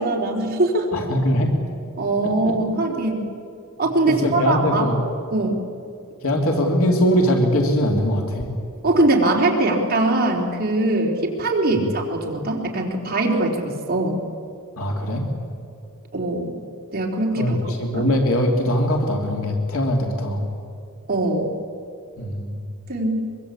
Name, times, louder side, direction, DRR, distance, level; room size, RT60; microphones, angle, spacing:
voice 1, 0.0-0.9 2.0-3.2 3.8-4.9 5.3-5.6 8.8-14.2 16.1-16.5 16.9-18.1 21.1-21.5 22.9-23.3, right 2 dB, 45° right, -1 dB, 3.8 m, -22 dB
voice 2, 0.9-1.5 4.1-5.0 6.2-8.5 11.7-11.8 14.8-15.3 17.4-20.5 22.2-22.6, equal, 70° left, 2 dB, 3.0 m, -21 dB
23.5 x 23.0 x 8.5 m, 2.5 s
head